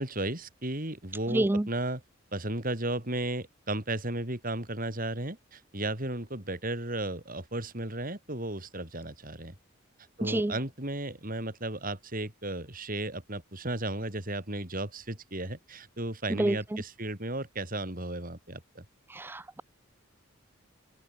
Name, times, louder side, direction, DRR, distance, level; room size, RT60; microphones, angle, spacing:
voice 1, 0.0-2.0 2.3-9.5 10.2-18.8, right 2 dB, 45° right, 5.1 m, -34 dB
voice 2, 1.3-1.7 10.2-10.5 16.4-16.8 19.1-19.6, right 1 dB, 10° right, 0.4 m, -28 dB
head